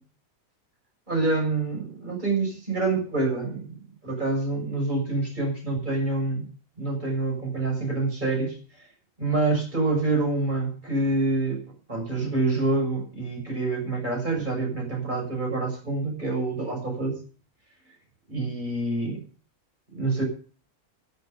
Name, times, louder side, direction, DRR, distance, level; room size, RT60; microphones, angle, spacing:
voice 1, 1.1-3.7 4.0-6.5 6.8-8.6 9.2-11.6 11.9-17.2 18.3-19.2 19.9-20.2, right 3 dB, 30° right, 0 dB, 6.8 m, -26 dB
12.5 x 11.0 x 7.3 m, 0.41 s
omnidirectional pair, 1.5 m